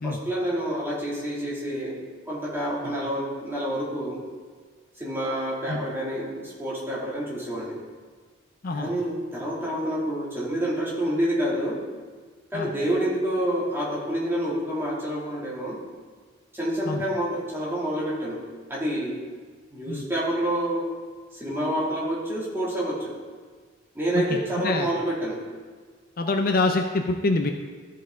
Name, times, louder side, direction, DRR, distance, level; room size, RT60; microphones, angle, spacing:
voice 1, 0.0-1.9 2.3-4.2 5.0-7.7 8.7-11.8 12.5-15.8 16.5-18.4 18.7-19.1 19.7-20.9 21.3-23.2 23.9-25.4, right 1 dB, 10° right, -6 dB, 2.4 m, -28 dB
voice 2, 24.1-24.9 26.2-27.5, left 2 dB, 45° left, 4 dB, 0.5 m, -25 dB
13.5 x 5.6 x 3.7 m, 1.5 s
head